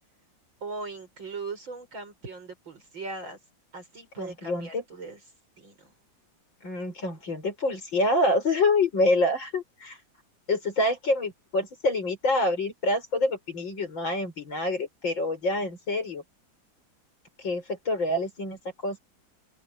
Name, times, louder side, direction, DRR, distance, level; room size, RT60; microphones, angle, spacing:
voice 1, 0.6-3.4 3.7-5.2 5.6-5.9, right 3 dB, 80° right, 7.8 m, -39 dB
voice 2, 4.2-4.8 6.6-10.0 10.5-16.2 17.4-19.0, left 2 dB, 80° left, 7.4 m, -26 dB
open air
omnidirectional pair, 2.1 m